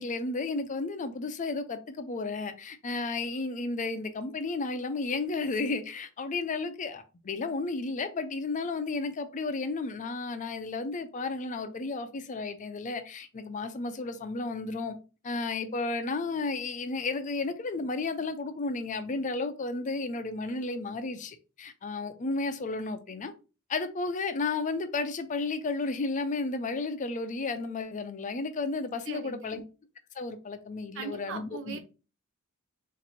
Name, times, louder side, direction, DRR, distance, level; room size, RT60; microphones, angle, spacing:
voice 1, 0.0-15.0 15.2-23.3 23.7-29.6 30.2-31.8, left 3 dB, 35° left, 0.4 m, -33 dB
voice 2, 29.1-29.6 30.9-31.8, right 5 dB, 60° right, 0.6 m, -39 dB
2.9 x 2.6 x 4.1 m
head